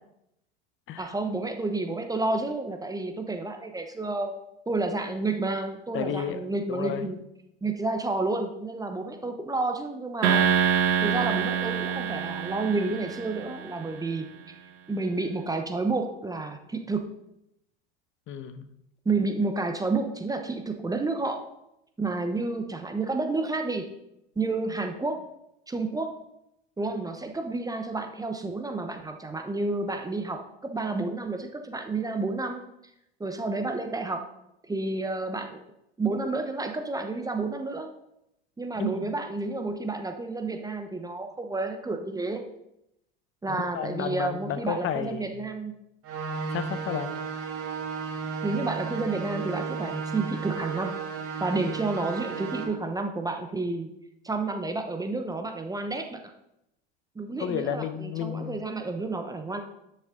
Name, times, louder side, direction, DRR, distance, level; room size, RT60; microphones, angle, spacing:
voice 1, 1.0-4.3 4.7-7.2 7.6-10.5 11.0-14.5 14.9-17.1 19.0-21.4 22.0-23.9 24.4-25.2 25.7-26.1 26.8-32.6 33.2-34.2 34.7-35.6 36.0-37.9 38.6-42.4 43.4-45.7 48.4-51.0 51.4-53.9 54.2-56.3 57.1-59.6, right 3 dB, 10° right, 5 dB, 0.9 m, -30 dB
voice 2, 5.9-6.4 6.7-7.1 18.3-18.7 38.8-39.1 43.6-45.4 46.5-47.1 57.4-58.7, left 8 dB, 40° left, 11 dB, 0.9 m, -32 dB
sound 1, 10.2-13.7, right 8 dB, 80° right, 1.3 m, -26 dB
sound 2, 46.0-52.6, right 5 dB, 45° right, 2.7 m, -34 dB
10.5 x 6.7 x 3.7 m, 0.83 s
hypercardioid pair, 100°, 32 cm